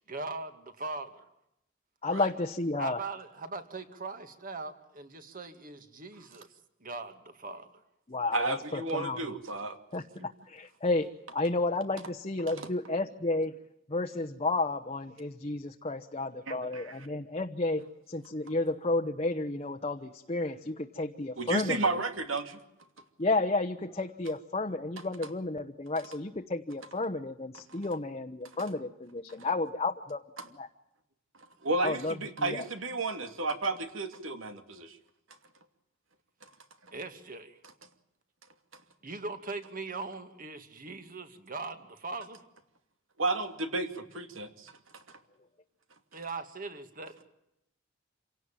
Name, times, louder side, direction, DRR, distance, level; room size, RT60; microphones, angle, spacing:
voice 1, 0.1-1.2 2.8-6.5 6.8-7.7 36.9-37.6 39.0-42.4 46.1-47.2, right 3 dB, 45° right, 8 dB, 2.4 m, -40 dB
voice 2, 2.0-3.0 8.1-9.2 9.9-13.6 13.9-21.9 23.2-30.2 30.6-30.7 31.8-32.6, left 2 dB, 30° left, 4 dB, 1.0 m, -32 dB
voice 3, 8.3-9.8 10.2-10.3 12.6-12.7 16.5-17.0 21.4-22.6 31.6-35.0 43.2-44.7, right 3 dB, 80° right, 8 dB, 2.7 m, -32 dB
27.0 x 17.5 x 9.1 m, 0.84 s
head